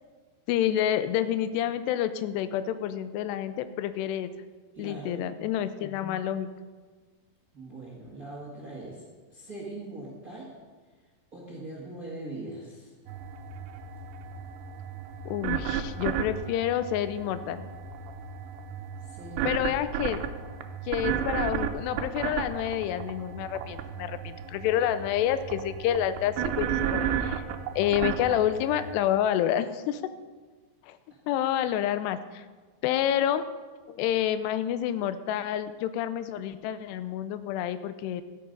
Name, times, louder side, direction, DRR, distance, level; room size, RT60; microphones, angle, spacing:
voice 1, 0.5-4.3 4.8-6.5 15.3-17.7 19.4-20.2 20.9-27.4 27.8-30.0 30.9-31.0 31.3-32.4 32.8-33.5 33.9-38.2, left 11 dB, 85° left, 12 dB, 2.7 m, -28 dB
voice 2, 4.7-5.3 7.5-9.0 9.3-10.5 11.3-12.9 19.0-19.7 31.1-31.2, right 2 dB, 40° right, -3 dB, 1.2 m, -41 dB
sound 1, 13.1-28.9, right 8 dB, 80° right, 2.6 m, -34 dB
13.5 x 8.5 x 5.3 m, 1.4 s
omnidirectional pair, 4.8 m